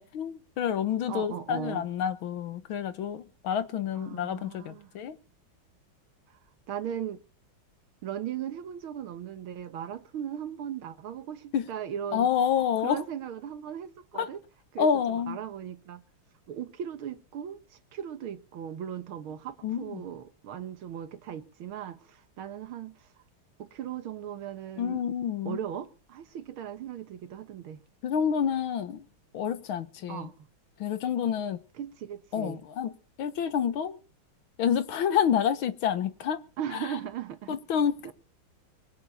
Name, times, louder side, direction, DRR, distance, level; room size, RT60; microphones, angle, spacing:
voice 1, 0.0-5.2 11.5-11.7 12.1-13.0 14.1-14.3 14.8-15.4 19.6-20.0 24.8-25.6 28.0-29.1 29.3-30.3 30.8-31.6 32.3-32.9 33.2-34.0 34.6-36.4 37.5-38.0, left 8 dB, 70° left, 1.9 m, -28 dB
voice 2, 1.1-1.9 3.9-4.9 6.7-7.2 8.0-12.3 12.8-14.4 14.7-16.0 16.5-23.1 23.6-25.0 25.5-27.8 30.1-30.5 31.8-32.6 36.6-37.6 38.0-38.1, right 9 dB, 75° right, 2.0 m, -38 dB
23.0 x 8.1 x 7.1 m
omnidirectional pair, 2.3 m